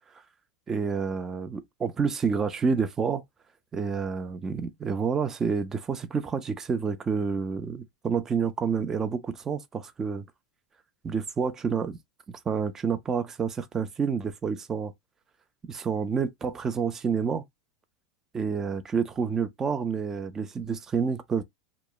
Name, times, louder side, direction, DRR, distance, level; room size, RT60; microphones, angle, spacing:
voice 1, 0.7-3.2 3.7-10.3 11.0-12.0 12.3-14.9 15.6-17.4 18.3-21.4, right 6 dB, 15° right, 0.3 m, -29 dB
2.9 x 2.0 x 2.3 m
supercardioid pair, 145°, 3 cm